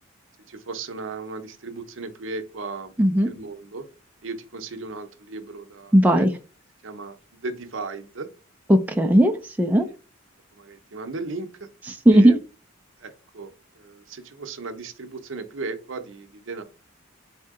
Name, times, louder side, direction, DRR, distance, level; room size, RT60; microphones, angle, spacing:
voice 1, 0.5-2.9 3.2-3.9 4.2-6.3 6.8-8.3 10.5-11.7 12.1-12.4 13.0-16.6, right 3 dB, 65° right, 8 dB, 0.7 m, -36 dB
voice 2, 3.0-3.3 5.9-6.3 8.7-9.9 11.9-12.4, right 1 dB, 10° right, 4 dB, 0.3 m, -17 dB
4.3 x 2.7 x 3.6 m, 0.34 s
head